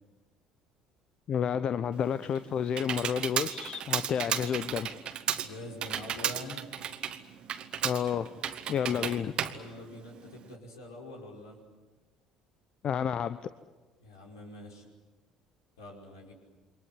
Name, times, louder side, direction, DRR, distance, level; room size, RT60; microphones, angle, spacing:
voice 1, 1.3-4.9 7.8-8.3 8.7-9.3 12.8-13.4, left 8 dB, 40° left, 13 dB, 0.8 m, -30 dB
Computer keyboard, 1.9-10.5, right 9 dB, 45° right, 1.7 m, -34 dB
voice 2, 5.4-6.7 8.6-9.2 9.5-11.6 14.0-14.9 15.8-16.3, left 1 dB, 70° left, 0 dB, 5.5 m, -45 dB
28.5 x 24.5 x 7.9 m, 1.3 s
figure-of-eight pair, 55°, 2 cm